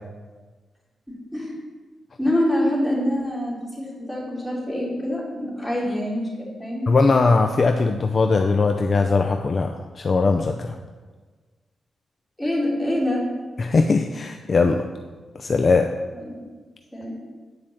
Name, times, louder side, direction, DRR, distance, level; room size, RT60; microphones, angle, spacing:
voice 1, 2.2-6.8 12.4-13.2 16.1-16.2 16.9-17.1, left 1 dB, 5° left, -5 dB, 3.5 m, -25 dB
voice 2, 6.9-10.8 13.6-14.9 15.4-15.9, left 4 dB, 40° left, 5 dB, 0.5 m, -20 dB
9.8 x 5.2 x 7.2 m, 1.4 s
cardioid pair, 110°, 0 cm